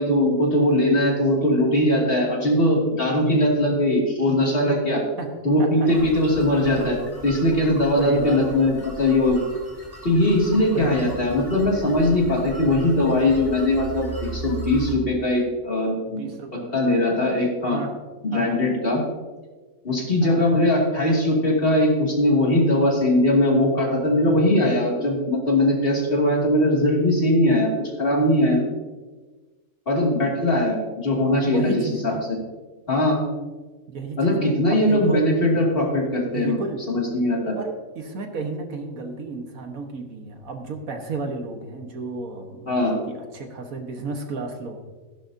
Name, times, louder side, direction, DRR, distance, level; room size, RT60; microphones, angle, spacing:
voice 1, 0.0-5.0 5.4-7.0 7.2-9.4 10.0-16.2 16.7-17.8 18.3-19.0 19.8-27.7 28.0-28.6 29.9-32.4 32.9-33.2 34.2-36.6 36.9-37.6 42.7-43.0, left 1 dB, 40° left, -3 dB, 2.7 m, -20 dB
voice 2, 5.6-6.1 6.7-7.0 8.0-8.4 10.7-11.1 16.1-17.0 17.7-18.0 18.3-18.6 20.2-20.4 31.5-32.2 33.9-35.2 36.2-36.8 37.6-44.8, right 3 dB, 80° right, 4 dB, 1.8 m, -33 dB
sound 1, 5.9-15.0, right 2 dB, 15° right, 3.2 m, -37 dB
16.0 x 11.5 x 2.8 m, 1.3 s
omnidirectional pair, 1.4 m